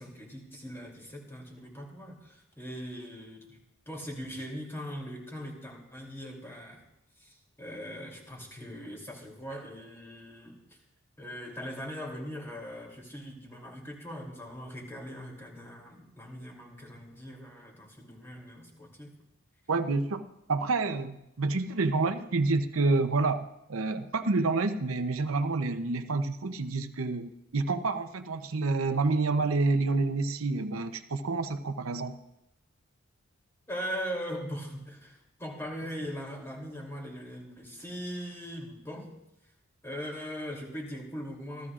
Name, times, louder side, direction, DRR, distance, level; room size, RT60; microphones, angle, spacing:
voice 1, 0.0-6.8 7.2-10.6 11.2-19.1 33.7-39.1 39.8-41.7, equal, 10° left, -1 dB, 3.0 m, -40 dB
voice 2, 19.7-20.2 20.5-32.2, right 3 dB, 85° right, 8 dB, 0.7 m, -28 dB
27.0 x 14.0 x 2.5 m, 0.86 s
head